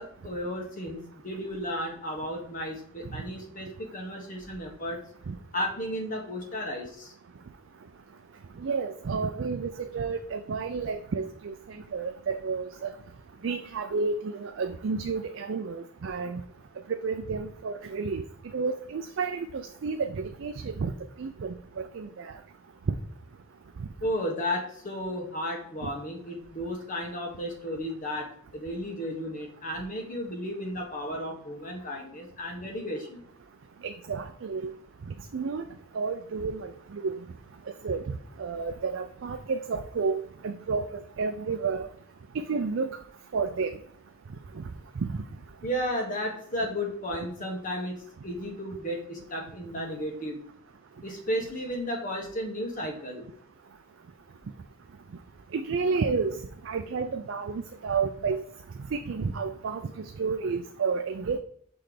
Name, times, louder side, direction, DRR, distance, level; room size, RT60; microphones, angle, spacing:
voice 1, 0.0-5.0 5.5-7.1 24.0-33.2 45.6-47.9 48.2-50.4 51.0-53.3, equal, 40° left, 1 dB, 1.4 m, -33 dB
voice 2, 8.6-12.9 13.4-16.4 16.9-18.2 18.5-20.9 21.2-22.3 25.8-25.9 33.8-34.7 35.1-35.6 35.9-37.2 37.8-38.0 38.4-41.9 42.3-42.9 43.3-43.8 44.6-44.7 45.0-45.1 55.5-58.4 58.9-61.4, right 4 dB, 65° right, 7 dB, 0.4 m, -31 dB
6.1 x 3.3 x 5.1 m, 0.66 s
head